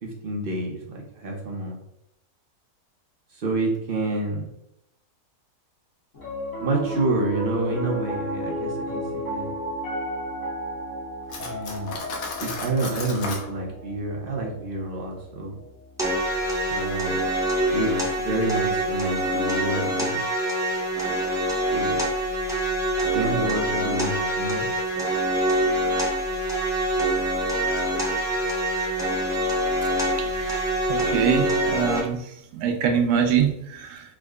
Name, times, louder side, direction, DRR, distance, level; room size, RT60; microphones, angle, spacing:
voice 1, 0.0-1.8 3.3-4.5 6.6-9.5 11.4-11.9 12.4-15.6 16.7-17.2 17.7-20.2 21.7-22.0 23.1-24.6, right 2 dB, 50° right, -1 dB, 0.7 m, -28 dB
Piano, 6.1-16.5, equal, 55° left, 1.4 m, -33 dB
Cutlery silverware, 11.3-13.5, left 3 dB, 80° left, 1.2 m, -34 dB
sound 1, 16.0-32.0, right 1 dB, 5° right, 0.6 m, -25 dB
voice 2, 30.2-30.6 30.9-32.2 32.5-34.0, right 7 dB, 80° right, 5 dB, 1.1 m, -24 dB
3.6 x 2.1 x 3.5 m, 0.79 s
omnidirectional pair, 1.6 m